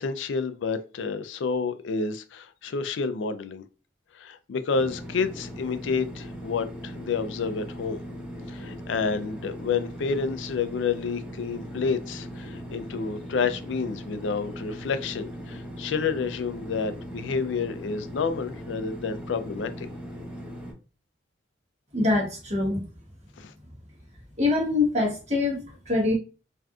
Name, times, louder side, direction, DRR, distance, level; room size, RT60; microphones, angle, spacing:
voice 1, 0.0-3.6 4.1-8.0 8.5-19.9 23.4-23.5, left 5 dB, 70° left, 0.4 m, -29 dB
sound 1, 4.7-20.7, equal, 5° right, 0.7 m, -39 dB
voice 2, 21.9-22.8 24.4-26.2, left 2 dB, 40° right, 1.2 m, -24 dB
3.4 x 2.5 x 2.3 m
head